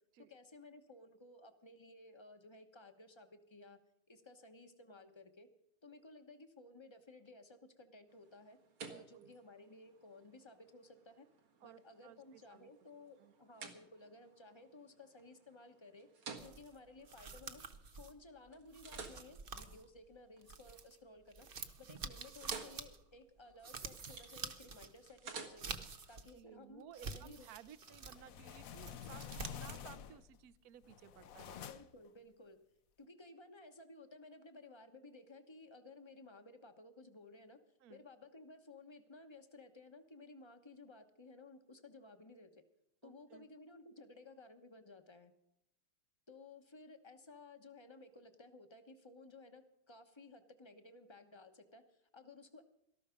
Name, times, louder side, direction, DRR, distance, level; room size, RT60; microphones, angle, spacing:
voice 1, 0.3-3.8 4.1-5.5 5.8-8.6 8.9-11.3 11.6-17.6 17.9-21.5 21.8-25.8 26.1-27.5 31.5-32.6 33.0-37.6 37.9-42.6 43.0-45.3 46.3-52.6, left 2 dB, 20° left, 8 dB, 0.7 m, -57 dB
sound 1, 8.1-18.1 18.5-20.8 21.2-21.6 21.9-26.2, right 5 dB, 85° right, 2.6 m, -54 dB
voice 2, 8.9-9.3 11.6-12.7 13.2-13.3 26.4-31.7 37.8-38.0 43.0-43.5, right 10 dB, 65° right, 16 dB, 0.9 m, -57 dB
sound 2, 16.4-21.0 21.3-26.4 26.8-28.2 28.6-29.9, right 5 dB, 50° right, 0.6 m, -48 dB
sound 3, 27.9-30.4 30.8-32.1, left 9 dB, 60° left, 0.9 m, -49 dB
18.0 x 13.5 x 5.2 m, 0.80 s
omnidirectional pair, 2.3 m